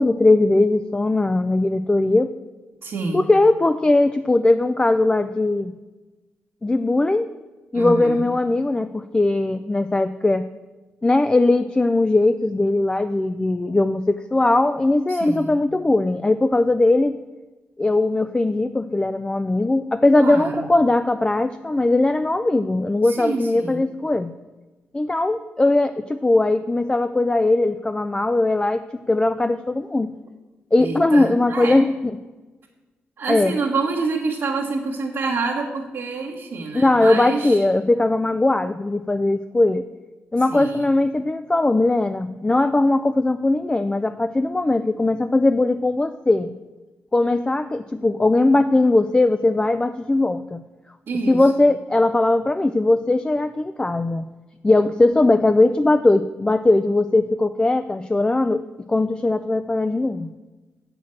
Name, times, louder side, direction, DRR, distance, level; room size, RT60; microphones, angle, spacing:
voice 1, 0.0-2.3 3.1-5.7 6.6-7.3 7.7-10.5 11.0-17.2 17.8-24.3 24.9-30.1 30.7-32.2 33.3-33.5 36.7-39.8 40.3-46.5 47.1-50.6 51.3-54.2 54.6-58.6 58.9-60.3, left 2 dB, 20° left, 10 dB, 0.4 m, -19 dB
voice 2, 2.8-3.2 7.7-8.3 15.1-15.5 20.2-20.7 23.0-23.8 30.8-31.8 33.2-37.6 40.5-40.8 51.1-51.4, right 4 dB, 70° right, -4 dB, 1.2 m, -27 dB
7.3 x 5.9 x 7.5 m, 1.2 s
cardioid pair, 65°, 4 cm